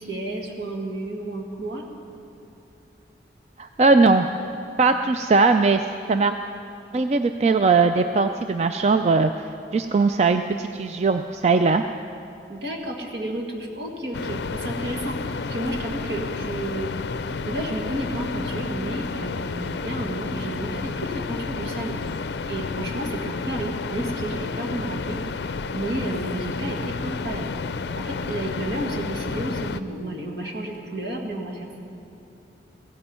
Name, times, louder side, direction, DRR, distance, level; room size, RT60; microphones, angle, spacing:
voice 1, 0.0-1.9 12.5-16.9 17.5-22.1 22.5-27.5 28.0-31.8, right 1 dB, 70° right, 1 dB, 1.9 m, -31 dB
voice 2, 3.6-4.3 4.8-5.8 6.1-6.4 6.9-9.3 9.7-11.8, right 4 dB, 35° right, 7 dB, 0.3 m, -19 dB
sound 1, 14.1-29.8, left 4 dB, 70° left, 0.4 m, -31 dB
16.0 x 16.0 x 4.4 m, 2.9 s
head